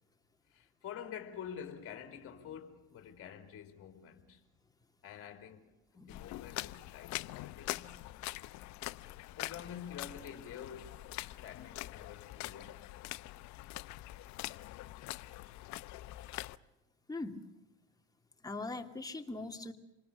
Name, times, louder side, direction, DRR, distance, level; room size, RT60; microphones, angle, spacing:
voice 1, 0.5-4.4 5.0-5.6 6.1-8.1 9.4-11.0 11.4-12.8, left 8 dB, 50° left, 3.1 m, -48 dB
voice 2, 6.0-6.3 17.1-17.4 18.4-19.7, left 2 dB, 10° left, 2.6 m, -41 dB
sound 1, 6.1-16.6, left 18 dB, 65° left, 0.8 m, -44 dB
27.0 x 19.5 x 7.0 m
supercardioid pair, 90°, 30 cm